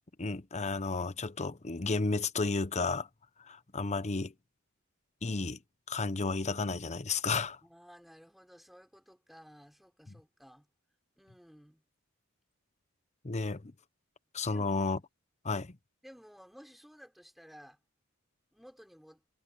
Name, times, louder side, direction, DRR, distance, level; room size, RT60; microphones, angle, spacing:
voice 1, 0.2-3.1 3.5-4.3 5.2-5.6 5.9-7.6 13.2-13.7 14.3-15.0 15.4-15.7, left 3 dB, 30° left, 0.9 m, -32 dB
voice 2, 7.6-10.7 11.2-11.8 14.4-14.9 16.0-17.8 18.5-19.2, equal, ahead, 5.4 m, -55 dB
head